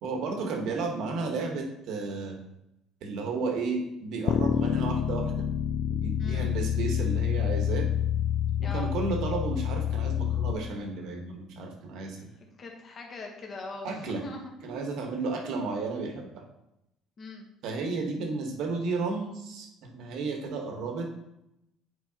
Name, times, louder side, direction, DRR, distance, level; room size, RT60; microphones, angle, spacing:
voice 1, 0.0-2.4 3.0-5.5 5.9-7.9 8.6-12.3 13.8-14.2 14.6-16.4 17.6-21.1, right 3 dB, 55° right, 3 dB, 1.1 m, -33 dB
sound 1, 4.3-10.5, left 9 dB, 45° left, 0.3 m, -27 dB
voice 2, 6.2-6.5 8.6-8.9 12.6-14.7 17.2-17.5, left 3 dB, 25° left, 1 dB, 1.0 m, -41 dB
9.2 x 4.6 x 2.8 m, 0.87 s
cardioid pair, 175°, 0 cm